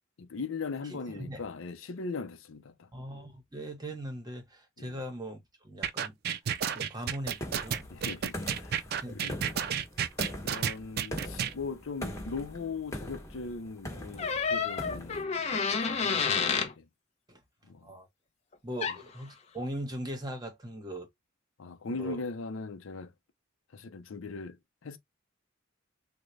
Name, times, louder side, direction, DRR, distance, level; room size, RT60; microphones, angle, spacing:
voice 1, 0.2-2.9 4.8-4.9 7.9-8.8 9.1-9.4 10.4-16.9 17.6-17.9 21.6-23.1 23.7-25.0, left 4 dB, 75° left, 0.6 m, -40 dB
voice 2, 0.9-1.4 2.9-6.2 6.7-7.9 9.0-9.7 17.3-17.4 17.8-18.1 18.6-21.1 21.9-22.2, right 1 dB, 20° right, 1.0 m, -40 dB
sound 1, 5.8-11.5, right 8 dB, 50° right, 0.4 m, -31 dB
sound 2, 7.4-15.2, left 1 dB, 15° left, 1.0 m, -41 dB
sound 3, 14.2-16.7 18.8-19.0, left 5 dB, 35° left, 0.6 m, -29 dB
3.9 x 2.1 x 3.1 m
head